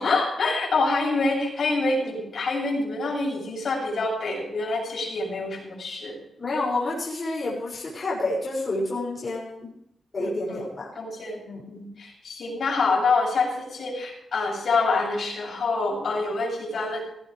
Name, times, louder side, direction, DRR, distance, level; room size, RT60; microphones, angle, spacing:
voice 1, 0.0-6.2 10.2-10.7 10.9-11.4 11.7-17.0, left 3 dB, 65° left, -1 dB, 7.8 m, -26 dB
voice 2, 6.4-9.7 10.1-10.9 11.4-11.6, left 2 dB, 35° left, -4 dB, 6.1 m, -29 dB
18.0 x 16.0 x 3.4 m, 0.75 s
wide cardioid pair, 105°, 0 cm